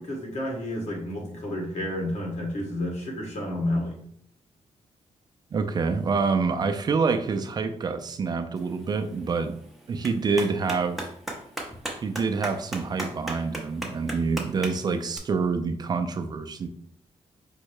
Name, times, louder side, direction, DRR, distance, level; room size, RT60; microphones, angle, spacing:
voice 1, 0.0-4.0, left 1 dB, 80° left, 1.7 m, -30 dB
voice 2, 5.5-9.5 9.9-11.1 12.0-16.7, right 4 dB, 35° right, 0.4 m, -27 dB
Clapping, 8.6-15.2, right 1 dB, ahead, 0.7 m, -38 dB
5.2 x 2.2 x 4.7 m
wide cardioid pair, 165°, 12 cm